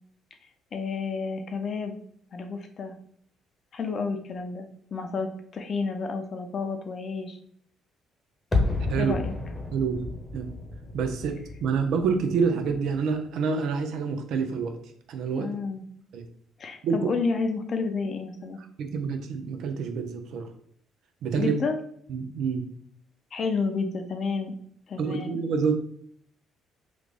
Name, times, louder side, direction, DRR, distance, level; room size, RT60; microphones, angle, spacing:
voice 1, 0.7-2.0 2.3-2.9 3.7-4.7 4.9-7.4 9.0-9.3 15.3-15.8 16.6-18.6 21.4-21.8 23.3-24.5 24.9-25.4, left 4 dB, 50° left, 6 dB, 0.6 m, -30 dB
sound 1, 8.5-13.5 13.7-13.8, left 3 dB, 25° left, 0.9 m, -31 dB
voice 2, 9.7-10.0 10.3-10.5 10.9-14.8 15.1-15.5 16.1-16.2 16.8-17.0 18.8-20.5 21.2-21.5 22.1-22.6 25.0-25.7, right 5 dB, 65° right, 6 dB, 0.5 m, -27 dB
3.1 x 2.4 x 3.5 m, 0.64 s
hypercardioid pair, 50°, 0 cm